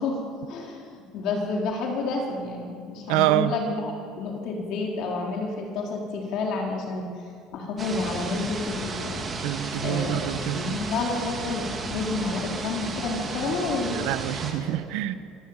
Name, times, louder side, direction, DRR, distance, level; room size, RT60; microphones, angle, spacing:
voice 1, 0.0-7.1 7.5-9.2 9.8-14.0 14.6-14.8, left 3 dB, 55° left, 0 dB, 4.4 m, -30 dB
voice 2, 3.1-3.5 9.4-10.7 13.9-15.1, right 15 dB, 85° right, 12 dB, 1.2 m, -26 dB
sound 1, 7.8-14.5, right 3 dB, 25° right, 3.1 m, -33 dB
25.5 x 21.0 x 9.1 m, 2.3 s
cardioid pair, 175°, 0 cm